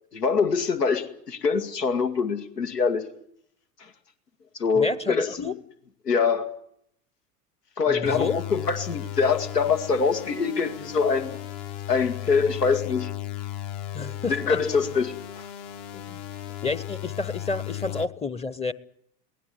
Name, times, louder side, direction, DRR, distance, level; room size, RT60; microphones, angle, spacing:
voice 1, 0.1-3.1 4.6-5.3 6.1-6.5 7.8-11.4 11.9-13.1 14.3-15.5, left 5 dB, 80° left, 8 dB, 2.2 m, -24 dB
voice 2, 4.7-5.5 7.9-8.4 13.9-14.6 15.9-16.2 16.6-18.7, left 4 dB, 15° left, 17 dB, 0.9 m, -30 dB
sound 1, 8.0-18.0, left 12 dB, 40° left, 1.3 m, -36 dB
22.5 x 18.5 x 9.4 m, 0.70 s
figure-of-eight pair, 80°, 47 cm